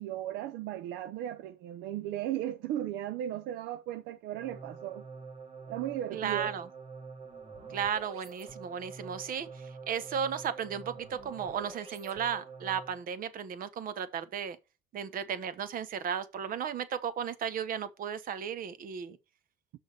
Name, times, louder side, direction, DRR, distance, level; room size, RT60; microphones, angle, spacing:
voice 1, 0.0-5.0 5.7-6.5, right 12 dB, 85° right, 0.6 m, -36 dB
sound 1, 4.3-13.1, right 5 dB, 35° right, 1.6 m, -46 dB
voice 2, 6.1-6.7 7.7-14.6 14.9-19.2, right 8 dB, 55° right, 1.2 m, -35 dB
6.4 x 5.6 x 6.7 m
cardioid pair, 110°, 17 cm